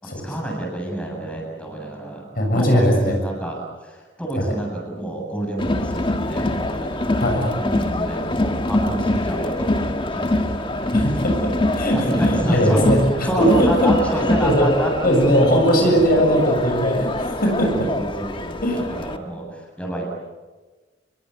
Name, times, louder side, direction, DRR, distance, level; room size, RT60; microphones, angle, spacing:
voice 1, 0.2-2.3 2.5-7.2 7.6-11.2 11.9-12.9 13.2-16.2 17.7-20.1, right 1 dB, 5° left, 0 dB, 7.8 m, -27 dB
voice 2, 2.3-3.2 4.4-4.5 7.2-7.5 10.9-13.9 14.4-14.7 15.0-17.9 18.6-18.9, equal, 55° left, 2 dB, 7.2 m, -19 dB
Crowd, 5.6-19.2, left 1 dB, 30° left, 1.6 m, -24 dB
28.5 x 22.5 x 8.1 m, 1.3 s
head